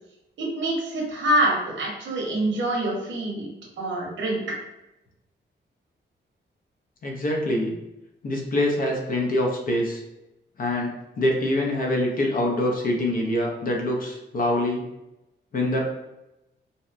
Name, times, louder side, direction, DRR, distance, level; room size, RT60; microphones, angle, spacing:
voice 1, 0.4-3.5 3.8-4.4, right 1 dB, 75° right, -2 dB, 0.7 m, -25 dB
voice 2, 7.0-7.8 8.2-10.0 10.6-14.8 15.5-15.9, left 1 dB, 45° left, 0 dB, 0.5 m, -25 dB
2.7 x 2.1 x 2.4 m, 0.93 s
wide cardioid pair, 170°, 19 cm